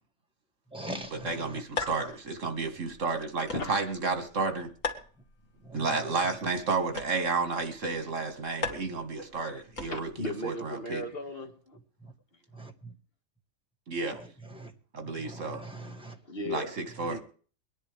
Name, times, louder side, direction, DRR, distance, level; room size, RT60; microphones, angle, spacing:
voice 1, 0.7-1.6 5.6-5.9 12.5-12.9 14.5-14.7 15.2-16.2 17.0-17.2, right 1 dB, 5° right, 2 dB, 1.5 m, -42 dB
sound 1, 1.0-10.3, left 4 dB, 85° left, 2.1 m, -42 dB
voice 2, 1.2-4.7 5.7-11.0 13.9-14.2 14.9-15.6 16.4-17.2, right 4 dB, 75° right, 7 dB, 2.2 m, -31 dB
voice 3, 1.8-2.1 3.5-3.8 9.4-9.6 9.9-11.8 16.3-16.8 17.0-17.2, left 1 dB, 50° left, 5 dB, 1.9 m, -37 dB
23.5 x 10.0 x 3.4 m, 0.41 s
omnidirectional pair, 1.3 m